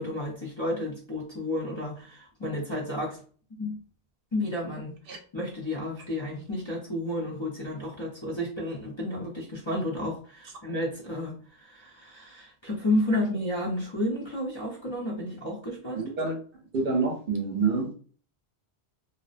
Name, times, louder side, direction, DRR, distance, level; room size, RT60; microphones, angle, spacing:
voice 1, 0.0-3.2 3.6-3.8 4.3-4.9 5.3-16.1, left 1 dB, 35° left, -6 dB, 0.5 m, -31 dB
voice 2, 16.0-16.4 16.7-17.9, right 4 dB, 60° right, 3 dB, 0.8 m, -27 dB
2.6 x 2.0 x 2.4 m, 0.42 s
omnidirectional pair, 1.1 m